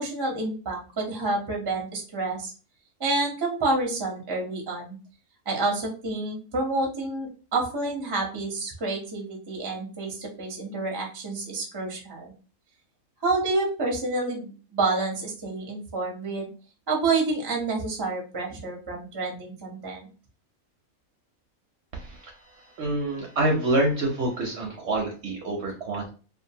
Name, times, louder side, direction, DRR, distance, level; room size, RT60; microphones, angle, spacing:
voice 1, 0.0-2.5 3.0-5.0 5.5-12.3 13.2-16.5 16.9-20.1, right 3 dB, 30° right, 0 dB, 0.4 m, -28 dB
voice 2, 21.9-26.1, right 1 dB, 65° right, 1 dB, 0.7 m, -27 dB
2.5 x 2.4 x 2.7 m, 0.36 s
omnidirectional pair, 1.5 m